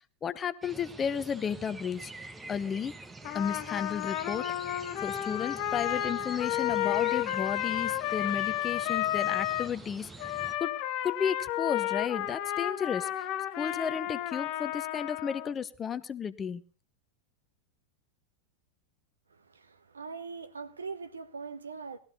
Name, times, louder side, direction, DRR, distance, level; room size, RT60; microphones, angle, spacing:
voice 1, 0.2-2.1 2.5-2.9 3.3-4.4 5.0-10.7 11.0-13.3 13.6-16.6, left 7 dB, 20° left, 0.8 m, -33 dB
sound 1, 0.6-10.5, right 3 dB, 10° right, 1.0 m, -46 dB
Trumpet, 3.2-9.7 10.2-15.5, left 13 dB, 40° left, 1.1 m, -32 dB
voice 2, 19.3-22.0, right 5 dB, 75° right, 1.1 m, -41 dB
18.5 x 13.0 x 4.1 m
figure-of-eight pair, 90°, 0 cm